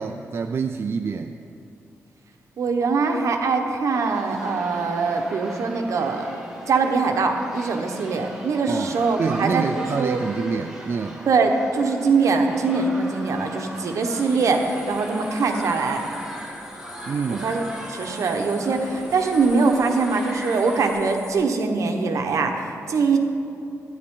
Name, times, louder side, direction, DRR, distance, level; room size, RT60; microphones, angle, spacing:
voice 1, 0.0-1.3 8.7-11.2 17.1-17.4, right 5 dB, 45° right, 6 dB, 0.4 m, -27 dB
voice 2, 2.6-6.3 6.7-10.2 11.3-16.0 17.3-23.2, right 4 dB, 70° right, 4 dB, 1.0 m, -22 dB
sound 1, 3.9-20.9, equal, 10° right, 1.9 m, -39 dB
sound 2, 14.0-21.3, left 2 dB, 70° left, 2.3 m, -44 dB
12.5 x 10.0 x 3.7 m, 2.7 s
cardioid pair, 105°, 5 cm